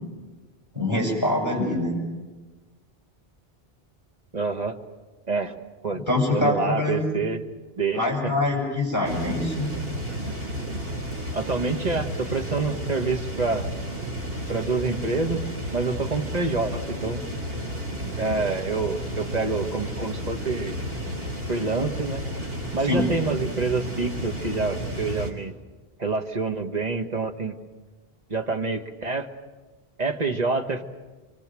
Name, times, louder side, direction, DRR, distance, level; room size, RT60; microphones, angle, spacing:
voice 1, 0.7-2.0 6.1-7.0 7.9-9.7 22.8-23.0, left 2 dB, 15° right, -1 dB, 7.2 m, -24 dB
voice 2, 4.3-4.8 5.3-5.5 5.8-6.0 6.3-7.4 7.8-8.3 11.3-13.7 14.5-17.2 18.2-20.8 21.5-22.2 22.7-25.5 26.0-27.5 28.3-29.3 30.0-30.8, right 3 dB, 40° right, 5 dB, 1.7 m, -27 dB
sound 1, 9.0-25.3, equal, 65° right, 3.8 m, -32 dB
25.5 x 25.0 x 7.7 m, 1.3 s
omnidirectional pair, 1.0 m